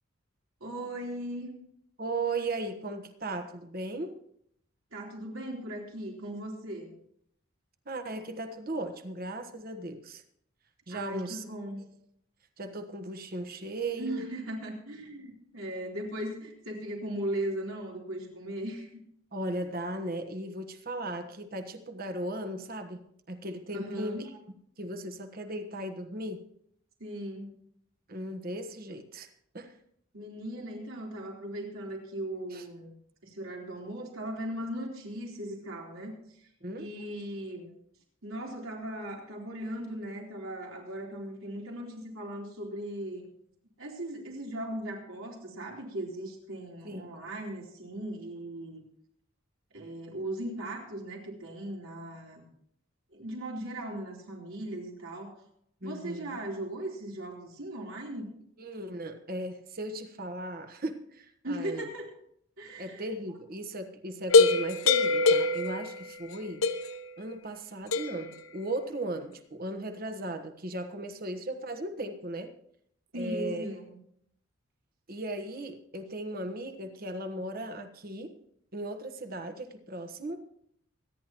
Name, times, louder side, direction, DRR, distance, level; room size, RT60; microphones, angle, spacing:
voice 1, 0.6-1.5 4.9-6.9 10.9-11.8 14.0-19.0 23.7-24.3 27.0-27.5 30.1-32.9 33.2-36.4 36.8-37.7 38.2-43.3 43.8-48.8 49.7-52.5 53.1-55.4 55.8-58.3 61.4-62.1 62.6-63.1 73.1-74.0, right 1 dB, 85° right, 3.8 m, -38 dB
voice 2, 2.0-4.2 7.8-10.2 10.9-11.4 12.6-14.3 19.3-24.3 24.8-26.4 28.1-29.8 32.5-32.6 36.6-36.9 46.8-47.0 55.8-56.4 58.6-61.9 62.8-66.7 67.2-72.5 73.1-73.6 75.1-78.4 78.7-80.5, right 1 dB, 45° right, 1.3 m, -37 dB
sound 1, 64.3-66.3 66.6-67.1 67.9-68.3, left 3 dB, 90° left, 1.0 m, -24 dB
25.0 x 10.5 x 3.0 m
head